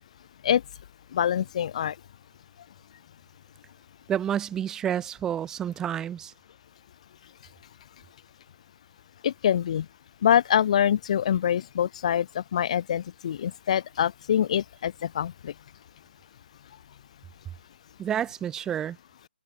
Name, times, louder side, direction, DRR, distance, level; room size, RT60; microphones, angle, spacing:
voice 1, 1.1-2.0 9.2-9.9 10.2-15.5, left 9 dB, 35° left, 2.5 m, -25 dB
voice 2, 4.1-6.3 18.0-19.0, right 9 dB, 10° right, 3.9 m, -29 dB
figure-of-eight pair, 150°, 6 cm